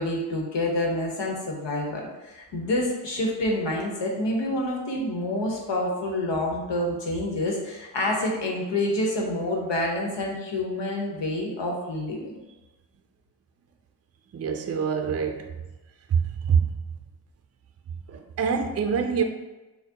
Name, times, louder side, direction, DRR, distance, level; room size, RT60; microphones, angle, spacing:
voice 1, 0.0-12.4, left 1 dB, 85° left, 1.1 m, -28 dB
voice 2, 14.3-15.5 16.1-16.7 18.1-19.2, right 6 dB, 40° right, 0.4 m, -25 dB
6.5 x 2.2 x 2.8 m
wide cardioid pair, 95°, 42 cm